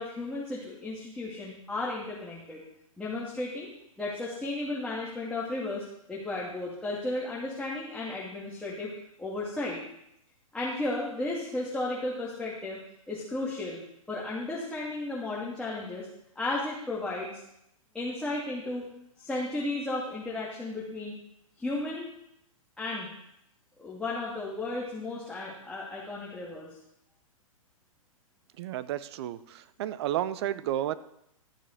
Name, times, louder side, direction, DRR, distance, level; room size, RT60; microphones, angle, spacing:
voice 1, 0.0-2.6 3.0-3.7 4.0-8.9 9.2-9.8 10.5-12.8 13.1-13.8 14.1-16.1 16.4-17.4 17.9-18.9 19.2-21.1 21.6-22.1 22.8-23.1 23.8-26.7 28.7-28.8, left 2 dB, 5° left, -6 dB, 2.4 m, -34 dB
voice 2, 28.6-31.0, right 12 dB, 45° right, 15 dB, 0.8 m, -32 dB
13.0 x 6.9 x 6.5 m, 0.79 s
hypercardioid pair, 125°, 18 cm